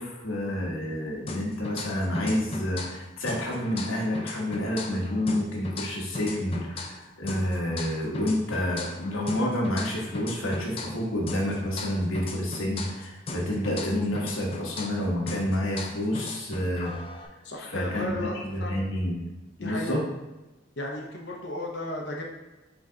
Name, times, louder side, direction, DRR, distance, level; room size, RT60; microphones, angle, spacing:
voice 1, 0.0-16.9 17.7-18.1 18.5-19.2 19.6-20.0, left 1 dB, 80° left, -2 dB, 1.1 m, -29 dB
sound 1, 1.3-3.0 3.3-7.0 7.3-11.0 11.3-15.0 15.3-17.3, left 2 dB, 30° left, 0.4 m, -37 dB
voice 2, 17.4-18.8 19.6-20.0 20.8-22.2, left 1 dB, 55° left, -1 dB, 0.8 m, -34 dB
3.9 x 3.5 x 3.7 m, 1.0 s
head